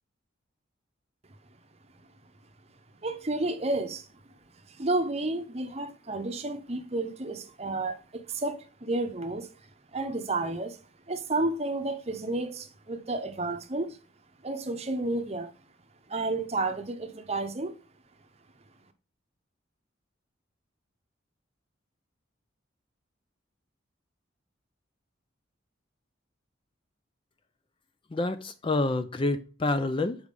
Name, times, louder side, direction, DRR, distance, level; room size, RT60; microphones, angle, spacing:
voice 1, 3.0-4.1 4.8-8.0 8.3-9.5 9.9-10.8 11.1-14.0 14.4-15.5 16.1-17.8, right 2 dB, 30° right, 0.7 m, -31 dB
voice 2, 28.1-30.2, left 2 dB, 25° left, 0.4 m, -28 dB
6.6 x 4.7 x 3.5 m
head